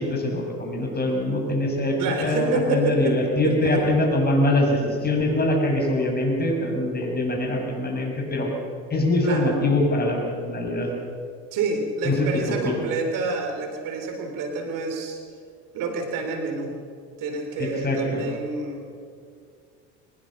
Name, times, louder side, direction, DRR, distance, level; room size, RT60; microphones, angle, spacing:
voice 1, 0.0-8.5 8.9-10.9 12.0-12.8 17.6-18.3, left 1 dB, 30° left, 1 dB, 7.3 m, -23 dB
voice 2, 2.0-3.2 3.4-4.0 9.2-9.5 11.5-15.2 15.7-16.7 17.2-18.8, right 3 dB, 65° right, 5 dB, 4.0 m, -28 dB
23.5 x 20.5 x 6.7 m, 2.2 s
supercardioid pair, 80°, 34 cm